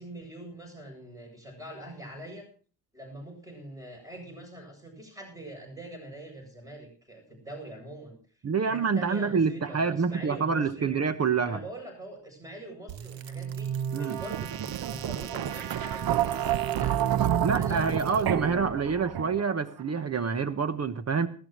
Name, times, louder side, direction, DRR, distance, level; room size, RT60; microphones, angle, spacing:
voice 1, 0.0-2.5 2.9-8.2 8.6-11.0 11.4-17.0 17.4-18.5, right 1 dB, 10° right, 3 dB, 7.8 m, -43 dB
voice 2, 8.4-11.6 13.9-14.2 17.4-21.3, right 5 dB, 40° right, 12 dB, 1.1 m, -27 dB
sound 1, 12.9-19.6, right 10 dB, 60° right, 0.8 m, -29 dB
20.0 x 17.0 x 3.0 m, 0.40 s
cardioid pair, 130°, 41 cm